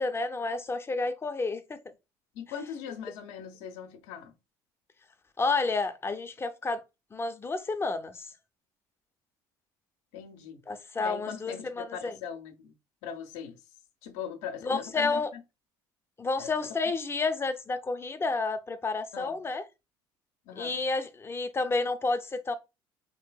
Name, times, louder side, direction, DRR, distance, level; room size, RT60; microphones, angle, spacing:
voice 1, 0.0-1.8 5.4-6.8 7.1-8.3 10.7-12.2 14.6-15.3 16.2-19.6 20.6-22.5, left 3 dB, 20° left, 0.5 m, -30 dB
voice 2, 2.3-4.3 10.1-10.6 11.0-12.7 13.0-13.6 14.0-15.4 16.4-16.7 19.1-19.4 20.5-20.8, left 8 dB, 75° left, 0.6 m, -40 dB
3.1 x 2.7 x 2.2 m
supercardioid pair, 75°, 11 cm